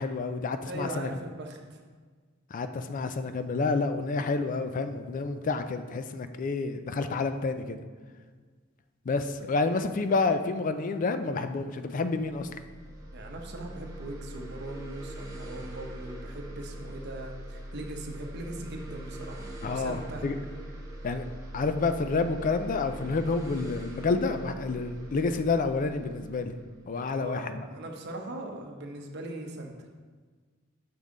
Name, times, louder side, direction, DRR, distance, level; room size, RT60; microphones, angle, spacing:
voice 1, 0.0-1.1 2.5-7.8 9.1-12.5 19.6-20.4 21.0-26.6 26.9-27.6, left 3 dB, 40° left, 9 dB, 0.4 m, -29 dB
voice 2, 0.7-1.8 13.1-20.2 27.1-29.7, right 1 dB, 55° right, 2 dB, 0.8 m, -40 dB
sound 1, 12.2-27.6, right 1 dB, 15° right, 0.9 m, -42 dB
6.1 x 5.4 x 3.8 m, 1.5 s
head